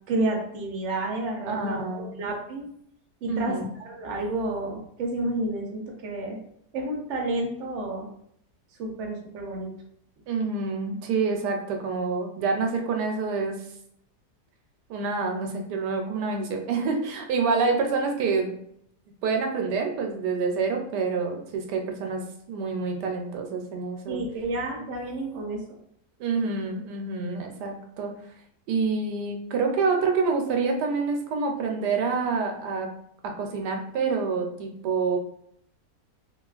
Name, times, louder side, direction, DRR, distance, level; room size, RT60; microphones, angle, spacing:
voice 1, 0.1-2.7 3.2-6.4 6.7-8.1 8.8-9.7 24.1-25.8, right 2 dB, 60° right, 0 dB, 0.8 m, -30 dB
voice 2, 1.5-2.1 3.3-3.7 10.3-13.6 14.9-18.6 19.2-24.2 26.2-28.1 28.7-32.9 33.2-35.2, right 4 dB, 90° right, 3 dB, 1.2 m, -27 dB
3.3 x 2.3 x 2.3 m, 0.71 s
omnidirectional pair, 1.7 m